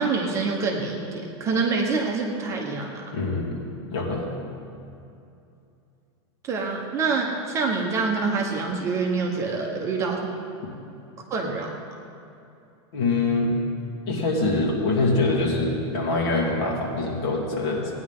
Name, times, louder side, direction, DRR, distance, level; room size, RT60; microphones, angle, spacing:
voice 1, 0.0-3.0 6.4-10.3 11.3-11.7, right 4 dB, 20° right, 0 dB, 1.2 m, -26 dB
voice 2, 3.1-3.6 3.9-4.3 12.9-13.5 14.1-18.0, left 3 dB, 60° left, -2 dB, 2.7 m, -24 dB
17.5 x 9.9 x 3.8 m, 2.6 s
supercardioid pair, 160°, 15 cm